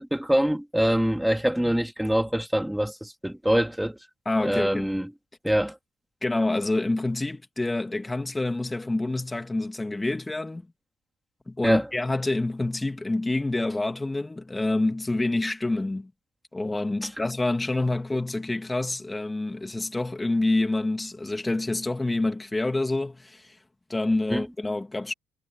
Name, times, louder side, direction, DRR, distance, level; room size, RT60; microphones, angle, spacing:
voice 1, 0.0-4.0 4.4-5.1 5.4-5.8 11.6-11.9 24.3-24.4, equal, 5° right, 3.3 m, -24 dB
voice 2, 4.2-4.9 6.2-10.7 11.5-16.1 16.5-23.6 23.9-25.1, left 2 dB, 15° left, 2.8 m, -27 dB
cardioid pair, 90°, 0 cm